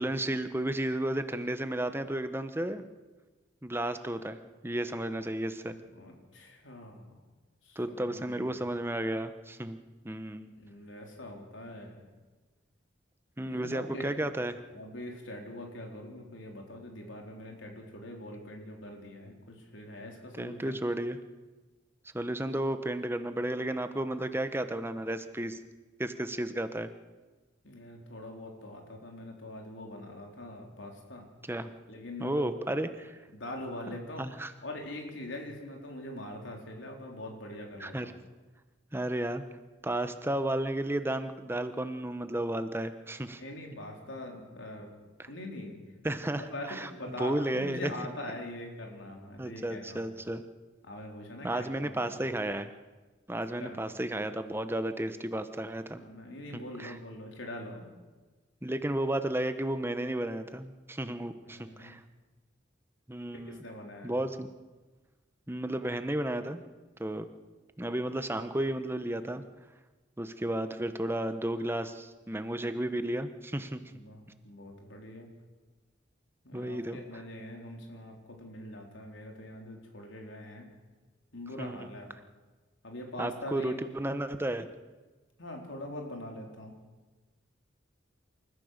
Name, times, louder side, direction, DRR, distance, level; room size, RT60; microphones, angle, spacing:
voice 1, 0.0-2.9 3.6-5.7 7.8-9.8 10.0-10.5 13.4-14.6 20.4-21.2 22.1-25.6 26.0-26.9 31.5-31.7 32.2-33.2 33.9-34.5 37.8-38.1 38.9-39.4 39.8-43.4 45.2-45.3 46.0-47.9 49.4-50.4 51.4-52.7 53.3-56.0 56.5-57.0 58.6-62.0 63.1-63.7 64.0-64.5 65.5-66.6 67.0-67.3 67.8-69.4 70.2-73.8 76.5-77.0 81.6-81.9 83.2-84.7, right 1 dB, 10° right, 10 dB, 1.0 m, -33 dB
voice 2, 5.9-7.1 7.6-8.6 10.4-12.0 13.4-14.3 14.7-20.8 27.6-31.3 31.9-32.5 33.3-34.3 34.6-38.1 43.3-44.9 45.3-45.8 46.3-50.0 50.8-52.1 53.3-53.8 56.0-57.9 61.4-62.0 63.5-64.2 73.9-75.3 76.4-80.7 81.3-82.1 82.8-83.8 85.4-86.7, left 1 dB, 85° left, 1 dB, 4.1 m, -43 dB
28.0 x 14.5 x 6.7 m, 1.3 s
head